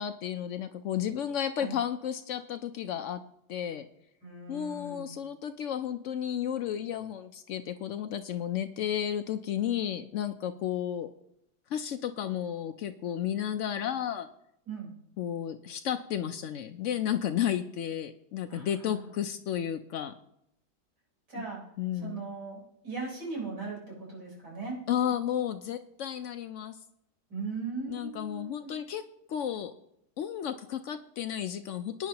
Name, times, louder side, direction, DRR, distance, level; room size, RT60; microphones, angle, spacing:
voice 1, 0.0-3.2 3.5-3.9 4.5-11.1 11.7-14.3 15.2-20.1 21.8-22.2 24.9-26.8 27.9-29.0 29.3-29.7 30.2-32.1, left 10 dB, 80° left, 8 dB, 0.6 m, -32 dB
voice 2, 4.2-5.1 14.7-14.9 18.5-19.1 21.3-21.6 22.0-24.8 27.3-28.7, right 4 dB, 70° right, -4 dB, 4.7 m, -39 dB
21.5 x 9.3 x 2.9 m, 0.77 s
omnidirectional pair, 1.9 m